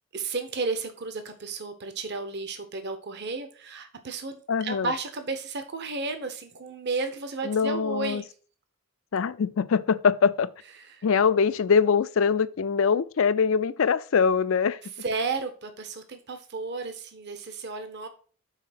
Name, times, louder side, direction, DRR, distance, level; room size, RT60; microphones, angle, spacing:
voice 1, 0.1-8.2 10.8-11.0 15.0-18.1, right 3 dB, 50° right, 0.8 m, -33 dB
voice 2, 4.5-4.9 7.4-8.2 9.1-10.5 11.0-14.8, left 6 dB, 60° left, 0.4 m, -23 dB
5.8 x 4.1 x 5.8 m
head